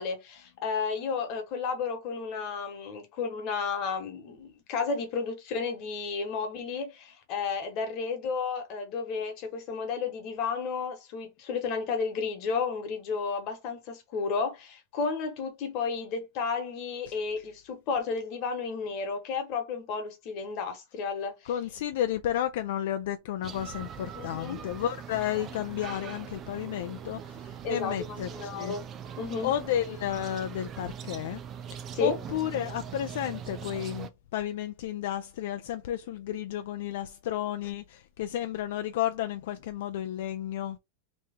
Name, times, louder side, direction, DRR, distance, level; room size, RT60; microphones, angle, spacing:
voice 1, 0.0-21.5 24.1-24.6 27.6-28.8 29.2-29.5 31.9-32.2, left 5 dB, 40° left, 1.2 m, -32 dB
voice 2, 21.5-28.7 29.4-31.4 31.7-40.8, left 11 dB, 65° left, 0.4 m, -32 dB
sound 1, 23.4-34.1, right 8 dB, 25° right, 0.4 m, -41 dB
3.0 x 2.9 x 3.6 m
supercardioid pair, 165°, 0 cm